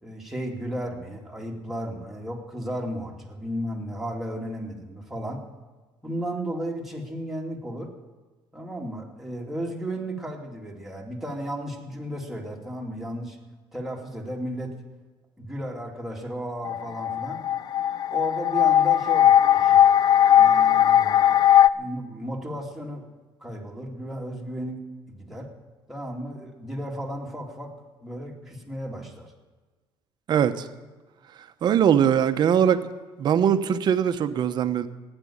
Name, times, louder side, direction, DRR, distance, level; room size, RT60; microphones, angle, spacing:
voice 1, 0.0-5.4 6.0-7.9 8.5-13.4 13.7-14.7 15.4-17.4 18.1-19.9 20.3-21.3 21.7-23.1 23.4-25.5 25.9-27.7 28.0-29.3, right 1 dB, 5° right, 2.7 m, -34 dB
sound 1, 16.6-21.7, left 10 dB, 45° left, 0.5 m, -18 dB
voice 2, 30.3-30.7 31.6-32.8 33.2-34.9, right 8 dB, 50° right, 1.0 m, -21 dB
15.0 x 10.0 x 8.7 m
cardioid pair, 125°, 10 cm